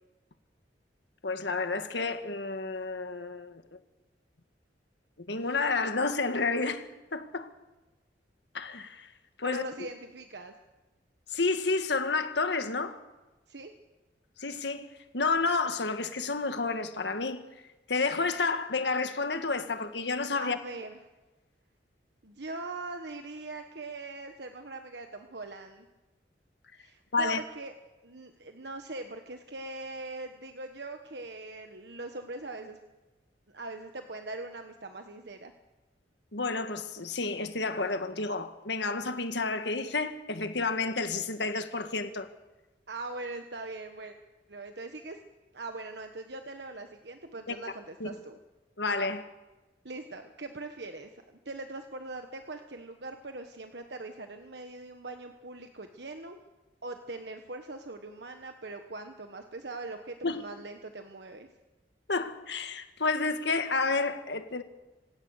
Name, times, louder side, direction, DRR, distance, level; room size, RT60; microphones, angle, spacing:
voice 1, 1.2-3.8 5.3-6.9 7.1-7.5 8.5-9.1 9.4-9.6 11.3-13.0 14.4-17.4 17.9-20.6 27.1-27.4 36.3-42.3 47.5-47.6 48.0-48.1 48.8-49.3 60.2-60.4 62.1-64.6, left 3 dB, 75° left, 1.8 m, -30 dB
voice 2, 9.4-10.5 13.5-13.7 20.3-21.0 22.2-25.9 26.8-27.7 28.0-32.8 33.5-35.5 42.9-44.1 44.5-45.2 45.5-48.4 49.8-56.4 56.8-61.5, right 2 dB, 70° right, 1.4 m, -41 dB
27.0 x 16.5 x 6.6 m
head